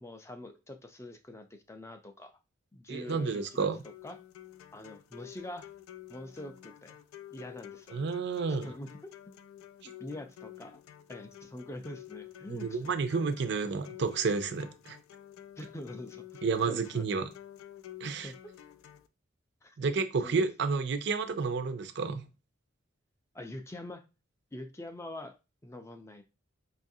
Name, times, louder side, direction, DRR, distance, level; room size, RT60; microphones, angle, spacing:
voice 1, 0.0-2.3 2.7-3.7 4.0-4.2 4.7-5.7 6.1-7.0 7.3-8.0 8.6-9.1 9.8-10.8 11.1-12.8 15.6-17.0 18.2-18.4 19.6-19.8 20.2-20.5 23.3-24.0 24.5-25.3 25.6-26.2, left 1 dB, 15° left, 0.4 m, -44 dB
voice 2, 2.9-3.8 7.9-8.7 12.5-15.0 16.4-17.2 18.0-18.3 19.8-22.3, right 4 dB, 55° right, 0.4 m, -30 dB
sound 1, 3.1-19.1, left 11 dB, 90° left, 0.4 m, -50 dB
5.4 x 2.4 x 2.6 m
head